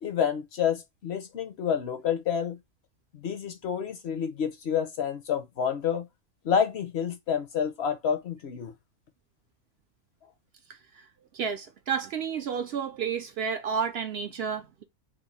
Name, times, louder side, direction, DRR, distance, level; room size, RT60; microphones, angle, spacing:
voice 1, 0.0-2.6 3.1-6.1 6.4-8.7, left 8 dB, 60° left, 0.8 m, -29 dB
voice 2, 10.7-11.1 11.3-14.8, right 6 dB, 60° right, 0.7 m, -31 dB
3.1 x 2.6 x 4.0 m
omnidirectional pair, 1.4 m